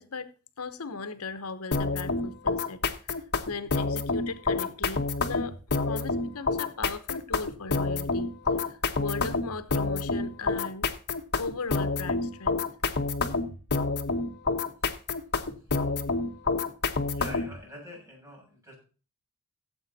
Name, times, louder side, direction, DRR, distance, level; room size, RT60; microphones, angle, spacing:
voice 1, 0.0-3.1 3.5-5.6 5.8-8.3 8.6-10.9 11.4-12.6, left 4 dB, 80° left, 1.0 m, -38 dB
sound 1, 1.7-17.6, left 3 dB, 50° left, 1.3 m, -28 dB
voice 2, 17.1-18.7, left 1 dB, 15° right, 7.8 m, -44 dB
16.5 x 8.1 x 4.1 m
head